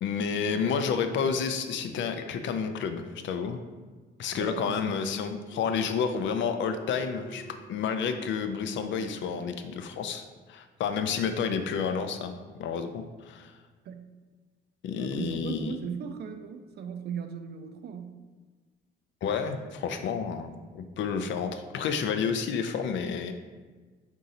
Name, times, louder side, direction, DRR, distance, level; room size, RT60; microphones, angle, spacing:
voice 1, 0.0-3.6 4.2-7.4 7.7-13.6 14.8-15.8 19.2-23.3, left 6 dB, 70° left, 8 dB, 0.4 m, -30 dB
voice 2, 4.3-4.8 13.9-14.1 14.9-18.2, right 7 dB, 55° right, 8 dB, 0.4 m, -38 dB
Telephone, 5.5-7.5, right 3 dB, 30° right, 0.8 m, -45 dB
3.8 x 2.7 x 4.1 m, 1.4 s
cardioid pair, 90°, 20 cm